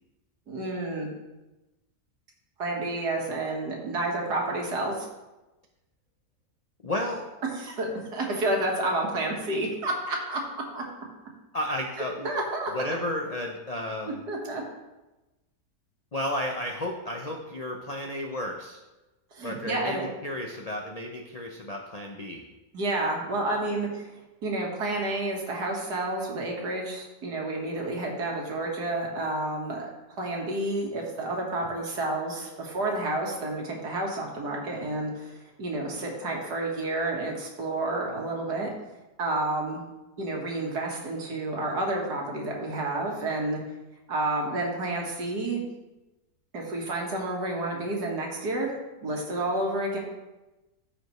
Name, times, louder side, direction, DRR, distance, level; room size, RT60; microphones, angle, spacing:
voice 1, 0.5-1.1 2.6-5.1 7.5-10.4 10.7-10.8 12.2-12.9 14.1-14.6 19.3-20.1 22.7-24.1 24.4-38.7 39.2-39.8 40.2-43.6 44.1-45.6 46.5-48.7 49.0-50.0, right 2 dB, 75° right, -1 dB, 2.1 m, -30 dB
voice 2, 6.8-7.3 11.5-12.3 12.7-14.2 16.1-18.8 19.4-22.4, left 1 dB, 50° left, 1 dB, 0.4 m, -32 dB
14.0 x 5.1 x 3.1 m, 1.1 s
omnidirectional pair, 1.8 m